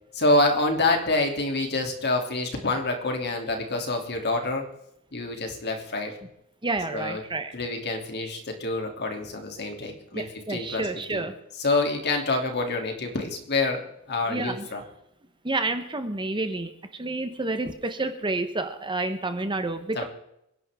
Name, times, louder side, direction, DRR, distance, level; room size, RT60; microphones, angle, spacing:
voice 1, 0.1-4.6 5.1-6.1 6.9-7.2 7.5-11.2 11.6-14.8 19.9-20.0, left 2 dB, 50° left, 3 dB, 3.0 m, -27 dB
voice 2, 6.6-7.5 10.1-11.3 14.3-14.7 15.4-20.0, right 2 dB, 20° right, 8 dB, 1.1 m, -29 dB
27.5 x 11.0 x 3.7 m, 0.80 s
head